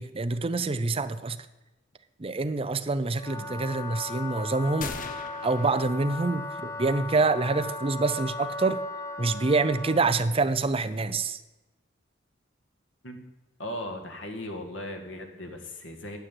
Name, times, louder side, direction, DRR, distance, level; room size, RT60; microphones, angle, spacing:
voice 1, 0.0-1.4 2.2-8.8 9.2-11.4, right 3 dB, 30° right, 11 dB, 0.6 m, -26 dB
Wind instrument woodwind instrument, 3.1-10.2, left 3 dB, 15° left, 0.9 m, -37 dB
sound 1, 4.8-6.7, left 5 dB, 45° left, 0.8 m, -40 dB
voice 2, 13.6-16.2, left 1 dB, 90° left, 4 dB, 1.9 m, -37 dB
9.2 x 7.5 x 9.1 m, 1.1 s
head